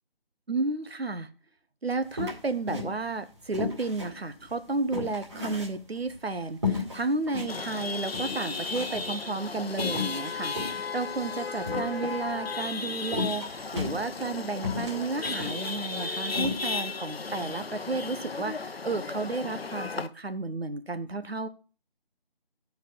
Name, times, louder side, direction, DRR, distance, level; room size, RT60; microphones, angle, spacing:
voice 1, 0.5-1.3 1.8-21.5, right 3 dB, 90° right, 10 dB, 1.0 m, -32 dB
sound 1, 2.2-3.2 3.5-6.2 6.6-7.5 7.9-8.0 8.1-9.1 9.7-12.3 13.1-14.3 14.6-15.6 15.9-16.0 16.3-16.7, left 4 dB, 30° right, 2.2 m, -34 dB
Chatter / Vehicle horn car horn honking / Traffic noise roadway noise, 7.5-20.1, left 4 dB, 80° left, 0.8 m, -35 dB
12.0 x 4.6 x 5.4 m, 0.37 s
figure-of-eight pair, 165°, 30 cm